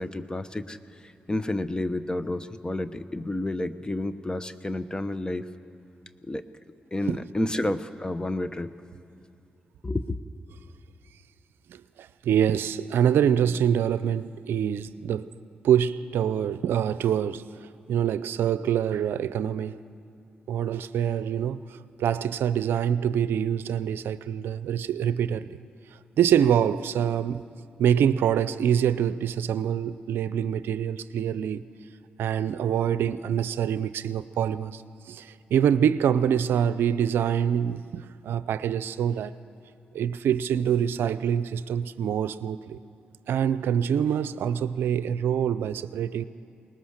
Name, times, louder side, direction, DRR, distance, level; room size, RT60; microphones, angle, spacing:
voice 1, 0.0-5.4 6.2-6.4 6.9-8.7 9.8-10.2, left 1 dB, 20° left, 1.1 m, -30 dB
voice 2, 11.7-15.3 15.6-17.4 17.9-19.7 20.5-21.6 22.0-25.6 26.2-27.5 27.8-31.6 32.2-34.8 35.1-39.3 39.9-42.8 43.3-46.2, right 9 dB, 80° right, 0.5 m, -25 dB
21.5 x 19.5 x 6.5 m
supercardioid pair, 45°, 4 cm